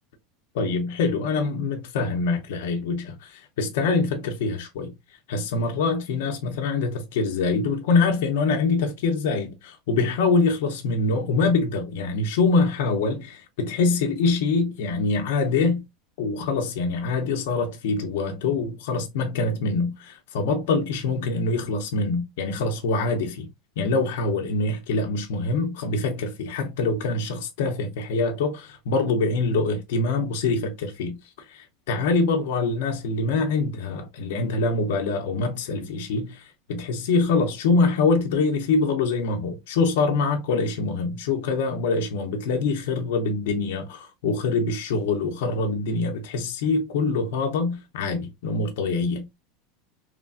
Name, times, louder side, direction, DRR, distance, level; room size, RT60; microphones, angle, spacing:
voice 1, 0.5-4.9 5.3-15.8 16.2-23.5 23.8-49.3, left 3 dB, 75° left, 0.5 m, -24 dB
3.0 x 2.4 x 2.4 m
supercardioid pair, 160°, 0 cm